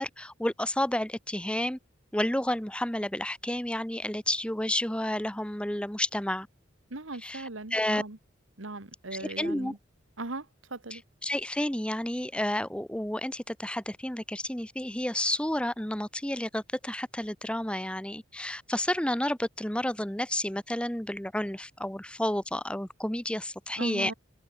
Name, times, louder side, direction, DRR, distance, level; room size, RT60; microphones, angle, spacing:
voice 1, 0.0-1.8 2.1-6.5 7.2-8.0 9.1-9.7 10.9-24.1, left 1 dB, 5° left, 1.0 m, -31 dB
voice 2, 6.9-8.2 8.6-9.8 10.2-11.0 23.8-24.1, right 2 dB, 90° right, 2.0 m, -38 dB
open air
head